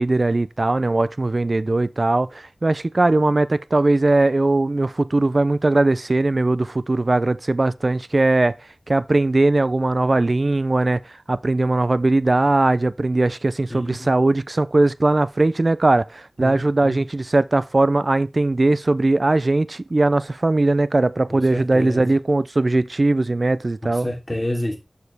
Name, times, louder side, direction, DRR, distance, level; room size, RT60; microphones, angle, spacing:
voice 1, 0.0-8.5 8.9-24.1, right 2 dB, 50° right, 0.3 m, -19 dB
voice 2, 13.7-14.1 16.4-16.6 16.8-17.0 21.3-22.1 23.9-24.8, left 1 dB, 20° left, 3.0 m, -29 dB
6.7 x 6.4 x 3.4 m
wide cardioid pair, 65°, 0 cm